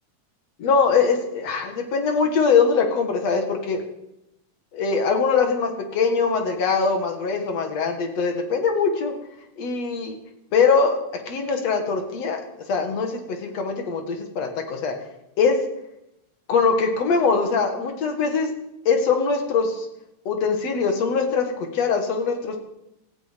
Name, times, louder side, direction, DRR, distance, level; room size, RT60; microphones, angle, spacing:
voice 1, 0.6-3.8 4.7-9.1 9.6-10.2 10.5-11.0 11.3-12.4 12.7-15.0 15.4-15.6 16.5-18.5 18.9-19.9 20.3-22.6, left 5 dB, 55° left, 5 dB, 2.8 m, -22 dB
16.5 x 14.5 x 5.3 m, 0.84 s
omnidirectional pair, 3.7 m